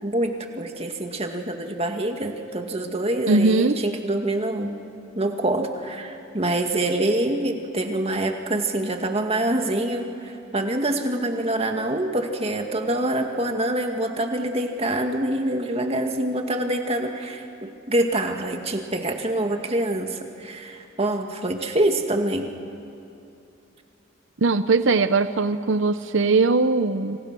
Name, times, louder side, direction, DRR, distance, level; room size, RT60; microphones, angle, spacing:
voice 1, 0.0-4.8 5.1-22.5, right 1 dB, 30° right, 4 dB, 2.1 m, -25 dB
voice 2, 3.3-3.8 24.4-27.2, right 3 dB, 65° right, 11 dB, 0.7 m, -20 dB
29.5 x 27.5 x 6.2 m, 2.8 s
head